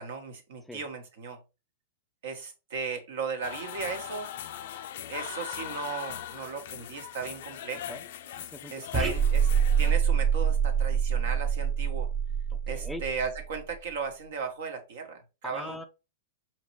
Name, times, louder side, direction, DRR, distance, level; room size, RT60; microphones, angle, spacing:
voice 1, 0.0-1.4 2.2-4.3 5.1-8.0 8.7-9.5 9.8-12.1 12.7-15.9, right 5 dB, 65° right, 1.1 m, -36 dB
sound 1, 3.4-9.9, left 10 dB, 60° left, 0.4 m, -40 dB
voice 2, 8.4-8.9 12.5-13.0 15.4-15.8, left 1 dB, 5° left, 0.4 m, -41 dB
sound 2, 8.9-13.6, right 7 dB, 25° right, 1.0 m, -25 dB
4.9 x 3.0 x 3.1 m
hypercardioid pair, 105°, 0 cm